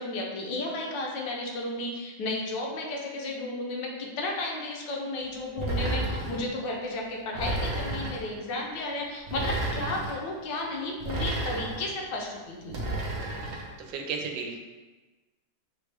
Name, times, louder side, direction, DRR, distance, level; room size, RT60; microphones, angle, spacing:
voice 1, 0.0-12.8, left 2 dB, 75° left, -1 dB, 1.4 m, -33 dB
sound 1, 5.6-6.4 7.3-8.3 9.3-10.2 11.0-11.9 12.7-13.7, right 2 dB, 55° right, 0.8 m, -31 dB
voice 2, 13.8-14.6, right 5 dB, 80° right, 2 dB, 1.3 m, -34 dB
6.0 x 2.4 x 3.3 m, 1.2 s
omnidirectional pair, 2.0 m